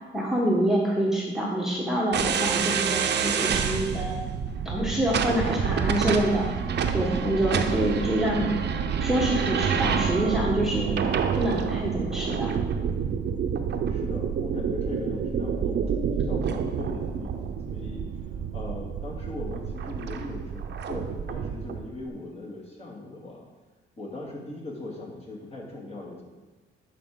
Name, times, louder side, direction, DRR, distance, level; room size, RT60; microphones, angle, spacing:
voice 1, 0.1-4.1 4.6-6.5 6.9-8.6 9.0-11.0 11.3-12.5, right 1 dB, ahead, -4 dB, 1.3 m, -26 dB
sound 1, 2.1-21.8, right 7 dB, 60° right, 0.7 m, -28 dB
voice 2, 13.9-15.8 16.1-18.1 18.5-23.4 24.0-26.2, left 2 dB, 30° left, -3 dB, 2.3 m, -39 dB
10.5 x 4.9 x 3.8 m, 1.2 s
cardioid pair, 90°, 20 cm